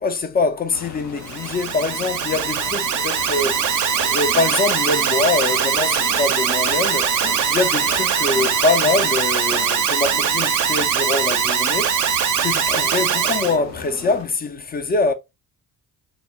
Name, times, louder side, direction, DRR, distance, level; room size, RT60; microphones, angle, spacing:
voice 1, 0.0-7.1 7.5-12.0 12.4-15.1, left 3 dB, 20° left, 0.4 m, -23 dB
sound 1, 0.7-14.2, left 4 dB, 85° left, 0.7 m, -37 dB
Alarm, 1.2-13.6, right 7 dB, 40° right, 0.6 m, -21 dB
2.1 x 2.0 x 3.4 m
hypercardioid pair, 50°, 49 cm